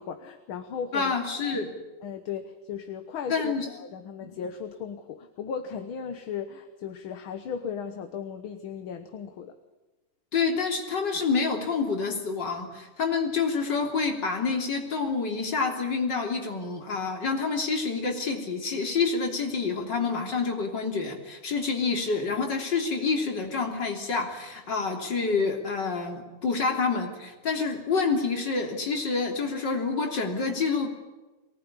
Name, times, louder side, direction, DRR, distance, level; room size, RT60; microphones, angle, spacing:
voice 1, 0.0-1.2 1.4-1.6 2.0-9.6, left 7 dB, 70° left, 8 dB, 2.0 m, -36 dB
voice 2, 0.9-1.7 3.3-3.7 4.2-4.3 10.3-30.9, left 4 dB, 50° left, 2 dB, 3.9 m, -28 dB
23.5 x 19.0 x 9.9 m, 1.2 s
omnidirectional pair, 2.4 m